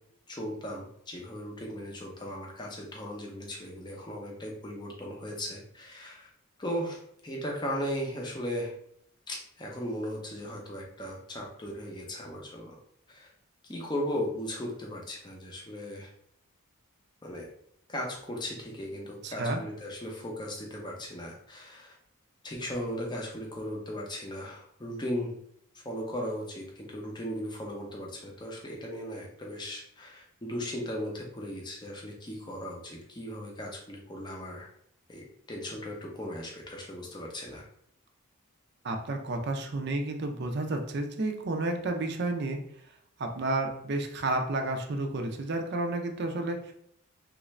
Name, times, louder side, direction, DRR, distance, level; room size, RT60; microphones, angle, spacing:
voice 1, 0.3-6.3 6.6-8.7 9.3-12.8 13.1-13.3 13.7-16.1 17.2-17.5 17.9-22.0 22.4-25.4 25.7-34.7 35.1-37.6, equal, 20° left, -1 dB, 0.6 m, -37 dB
voice 2, 19.2-19.6 38.8-42.6 43.2-46.7, right 2 dB, 50° right, 4 dB, 0.5 m, -31 dB
3.2 x 2.5 x 3.1 m, 0.69 s
head